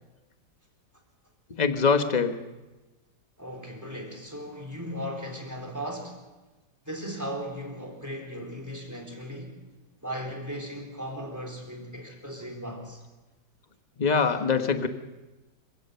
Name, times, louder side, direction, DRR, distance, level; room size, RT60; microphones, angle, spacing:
voice 1, 1.6-2.3 14.0-14.9, left 5 dB, 25° left, 1.2 m, -23 dB
voice 2, 3.4-6.2 6.8-9.6 10.0-13.0, equal, 10° right, 3.9 m, -37 dB
27.0 x 16.5 x 7.0 m
omnidirectional pair, 1.9 m